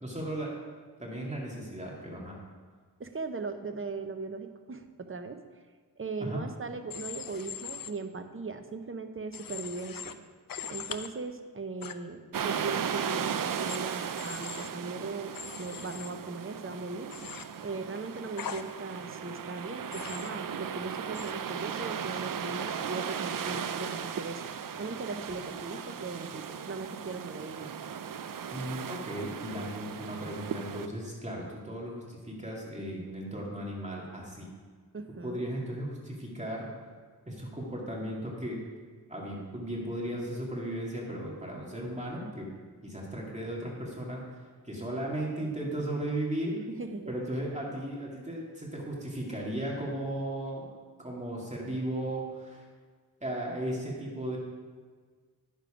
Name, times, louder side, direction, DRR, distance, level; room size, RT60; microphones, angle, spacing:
voice 1, 0.0-0.5 1.0-2.4 6.2-6.4 28.5-34.5 35.2-36.7 37.3-38.6 39.1-42.5 42.8-44.2 44.6-46.6 47.1-50.7 51.0-52.6 53.2-54.4, right 1 dB, 20° right, -3 dB, 2.4 m, -36 dB
voice 2, 3.0-5.4 6.0-10.2 10.7-17.1 17.6-24.5 24.8-27.7 34.9-35.5 46.7-47.2, right 3 dB, 35° right, 7 dB, 0.9 m, -39 dB
Human voice / Train, 6.9-7.9 9.3-10.1 10.5-11.1 11.8-11.9 13.7-13.8 14.2-14.7 15.3-16.1 17.1-17.4 18.4-18.6 19.9-20.3 21.1-21.3, left 8 dB, 60° left, 0.6 m, -40 dB
sound 1, 12.3-30.9, right 7 dB, 55° right, 0.6 m, -37 dB
10.0 x 6.9 x 5.0 m, 1.5 s
wide cardioid pair, 70°, 38 cm